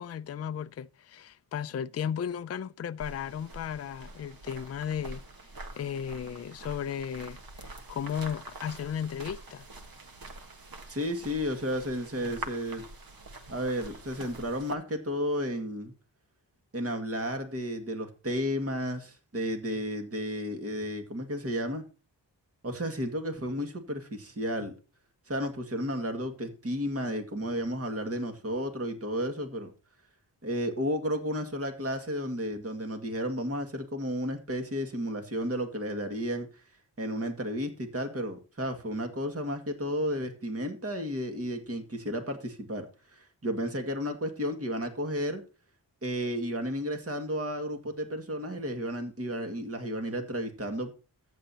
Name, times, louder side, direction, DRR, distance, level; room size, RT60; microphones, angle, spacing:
voice 1, 0.0-5.2 5.8-9.7, left 8 dB, 35° left, 0.4 m, -35 dB
sound 1, 3.0-14.7, right 2 dB, 55° right, 1.6 m, -45 dB
voice 2, 10.9-12.8 13.5-15.9 16.7-21.8 22.6-24.7 25.3-29.7 30.4-36.6 37.0-45.4 46.0-50.9, equal, 35° right, 2.0 m, -32 dB
14.0 x 7.9 x 2.9 m
cardioid pair, 45°, 41 cm